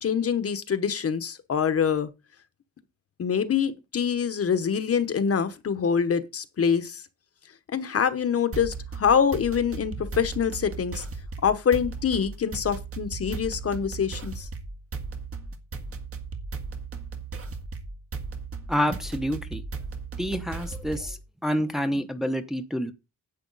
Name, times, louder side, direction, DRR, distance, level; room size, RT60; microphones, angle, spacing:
voice 1, 0.0-2.1 3.2-7.0 7.7-11.0 11.4-14.5, left 7 dB, 50° left, 1.1 m, -25 dB
sound 1, 8.5-21.2, right 4 dB, 50° right, 1.7 m, -36 dB
voice 2, 18.7-19.6 20.2-22.9, equal, ahead, 0.9 m, -28 dB
10.5 x 8.3 x 4.0 m
wide cardioid pair, 165°, 30 cm